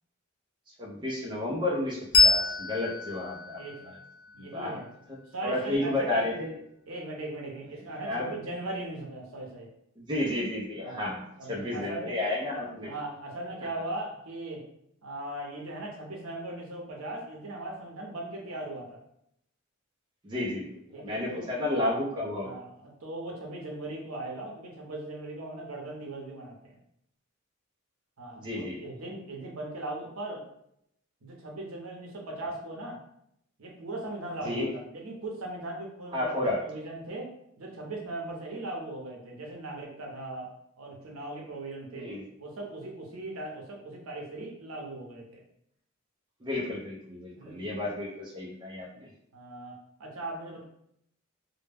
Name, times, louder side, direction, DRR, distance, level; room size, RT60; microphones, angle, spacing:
voice 1, 0.8-3.6 4.4-4.8 5.4-6.6 8.0-8.4 10.0-11.2 11.5-12.9 20.2-22.6 28.4-28.8 34.4-34.7 36.1-36.6 41.9-42.2 46.4-49.1, left 1 dB, 20° right, -3 dB, 0.5 m, -31 dB
Bell, 2.1-5.2, left 4 dB, 85° left, 0.6 m, -27 dB
voice 2, 4.3-4.9 5.3-6.2 6.9-9.7 10.8-11.1 11.4-12.2 12.5-14.6 15.0-19.0 20.9-21.5 22.4-26.8 28.2-30.4 31.2-33.0 33.6-37.3 37.6-40.5 40.8-42.1 42.4-45.4 47.3-47.7 49.3-50.6, right 2 dB, 80° right, -1 dB, 0.7 m, -39 dB
2.1 x 2.1 x 3.3 m, 0.74 s
head